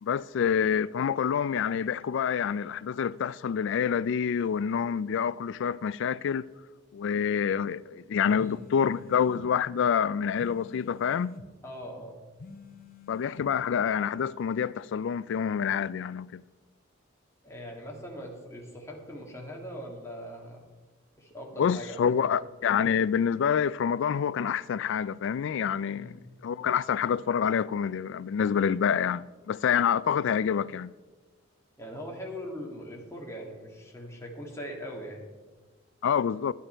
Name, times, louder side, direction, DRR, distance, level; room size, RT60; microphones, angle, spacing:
voice 1, 0.0-6.5 6.9-11.4 13.1-16.4 21.6-30.9 36.0-36.5, left 7 dB, 65° left, 0.3 m, -27 dB
voice 2, 8.2-8.5 11.6-12.1 17.4-20.6 21.2-22.3 25.9-26.2 31.8-35.2, equal, 15° left, 2.1 m, -41 dB
sound 1, 8.4-9.5 10.4-11.5 12.4-13.5, left 3 dB, 50° left, 0.7 m, -47 dB
11.0 x 10.5 x 4.5 m
head